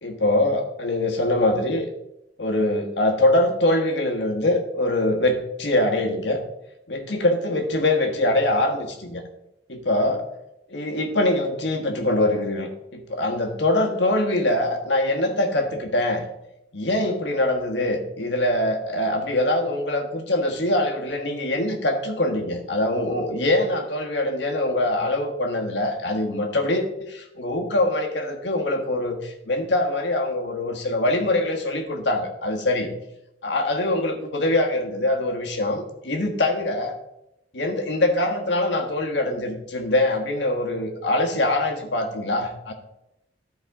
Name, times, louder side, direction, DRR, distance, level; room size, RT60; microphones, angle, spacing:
voice 1, 0.0-1.9 2.4-6.4 6.9-9.2 9.7-10.2 10.7-16.2 16.7-32.9 33.4-36.9 37.5-42.7, left 1 dB, 70° left, 3 dB, 1.4 m, -23 dB
14.0 x 4.7 x 3.6 m, 0.87 s
head